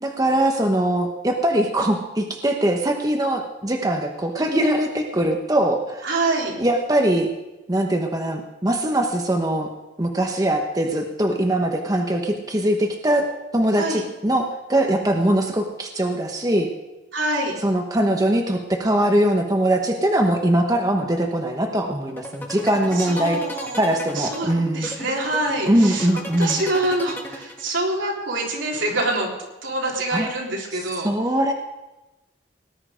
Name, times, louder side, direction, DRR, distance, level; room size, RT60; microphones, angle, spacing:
voice 1, 0.0-6.1 6.6-7.3 7.7-9.7 10.0-13.3 13.5-16.7 17.6-23.4 23.8-24.9 25.7-26.6 30.1-30.3 31.0-31.5, right 1 dB, 20° right, 3 dB, 1.0 m, -21 dB
voice 2, 6.0-6.5 13.8-14.0 17.1-17.6 22.9-23.8 24.2-26.1 26.4-29.3 29.6-31.1, right 2 dB, 80° right, -2 dB, 3.5 m, -25 dB
sound 1, 22.1-28.0, left 1 dB, 10° left, 1.3 m, -35 dB
18.5 x 11.0 x 5.1 m, 1.0 s
head